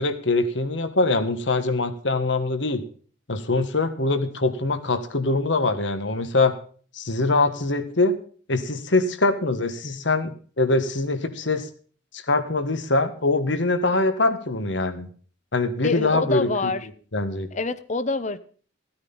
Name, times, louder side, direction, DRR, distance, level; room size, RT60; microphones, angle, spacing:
voice 1, 0.0-2.8 3.3-6.5 6.9-8.1 8.5-11.7 12.1-15.1 15.5-16.7 17.1-17.5, left 2 dB, 75° left, 10 dB, 1.5 m, -23 dB
voice 2, 15.8-16.9 17.5-18.4, left 3 dB, 40° left, 14 dB, 0.8 m, -26 dB
14.5 x 9.6 x 5.5 m, 0.43 s
head